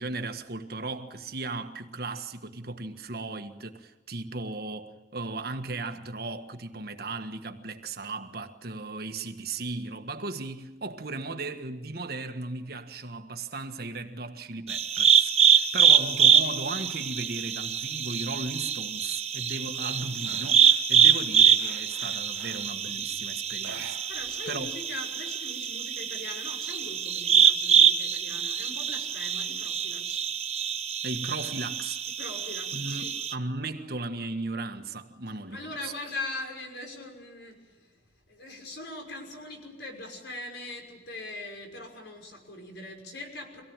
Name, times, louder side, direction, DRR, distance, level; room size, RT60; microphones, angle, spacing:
voice 1, 0.0-24.0 24.5-24.7 31.0-32.0 32.7-35.9, right 3 dB, 55° right, 1.6 m, -36 dB
sound 1, 14.7-33.3, right 8 dB, 35° right, 1.1 m, -25 dB
voice 2, 15.5-16.0 24.1-30.2 32.2-33.1 35.3-38.0 38.3-43.6, left 2 dB, 65° left, 6.0 m, -41 dB
sound 2, 18.6-19.0 19.4-22.8 23.5-24.5 24.8-24.9 25.3-26.2, right 5 dB, 85° right, 2.2 m, -48 dB
25.0 x 17.5 x 9.0 m
head